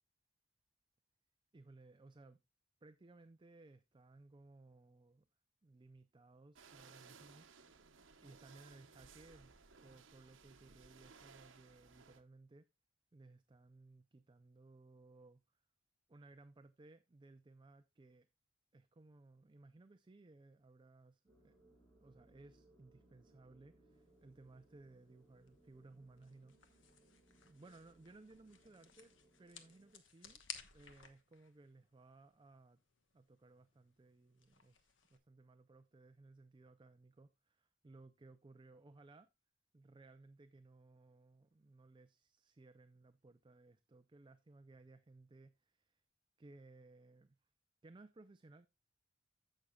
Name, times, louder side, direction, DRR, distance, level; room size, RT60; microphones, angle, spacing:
voice 1, 1.5-2.4 2.8-5.3 5.6-7.8 8.2-9.5 9.8-12.7 13.1-15.6 16.1-18.3 18.7-21.6 22.0-27.0 27.4-30.4 30.7-32.8 33.1-39.3 39.7-46.0 46.4-47.4 47.8-48.7, right 2 dB, 25° right, 0.4 m, -61 dB
sound 1, 6.5-12.2, right 5 dB, 80° right, 1.0 m, -61 dB
sound 2, 21.3-29.9, right 1 dB, 5° right, 4.6 m, -70 dB
sound 3, 23.9-35.2, left 7 dB, 70° left, 1.1 m, -59 dB
15.5 x 6.3 x 2.3 m
head